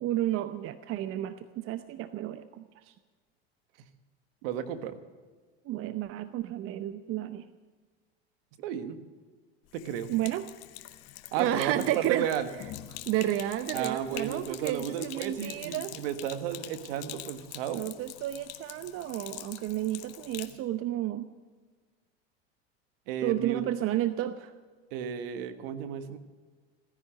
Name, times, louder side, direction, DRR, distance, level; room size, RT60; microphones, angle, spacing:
voice 1, 0.0-2.6 5.7-7.5 10.1-10.4 11.4-12.3 13.1-15.9 17.7-21.3 23.2-24.5, right 13 dB, 45° right, 12 dB, 0.8 m, -31 dB
voice 2, 4.4-5.0 8.6-9.0 9.7-10.1 11.3-12.5 13.7-17.9 23.1-23.6 24.9-26.2, right 9 dB, 70° right, 10 dB, 1.5 m, -33 dB
Sink (filling or washing), 9.7-20.6, left 15 dB, 55° left, 1.2 m, -45 dB
16.5 x 10.5 x 7.7 m, 1.4 s
hypercardioid pair, 95°, 31 cm